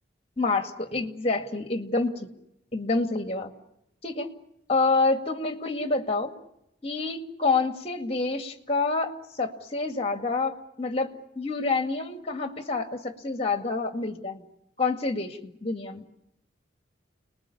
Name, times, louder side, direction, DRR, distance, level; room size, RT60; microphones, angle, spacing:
voice 1, 0.4-2.3 2.7-3.5 4.0-4.3 4.7-6.3 6.8-14.4 14.8-16.0, left 3 dB, 35° left, 7 dB, 2.1 m, -28 dB
29.5 x 20.5 x 8.5 m, 0.85 s
head